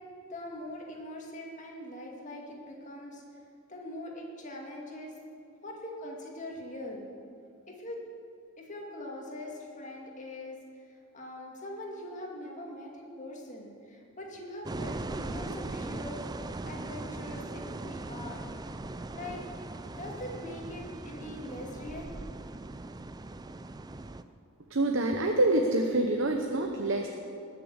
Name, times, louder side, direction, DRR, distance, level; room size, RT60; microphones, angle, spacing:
voice 1, 0.3-3.2 3.7-5.1 5.6-7.0 7.7-8.0 8.6-10.6 11.1-18.5 19.1-19.4 20.0-22.1, left 1 dB, 35° left, -1 dB, 2.3 m, -42 dB
sound 1, 14.6-24.2, right 2 dB, 20° right, 0.4 m, -39 dB
voice 2, 24.7-27.1, right 2 dB, 60° right, 3 dB, 0.9 m, -26 dB
20.0 x 6.9 x 8.1 m, 2.5 s
head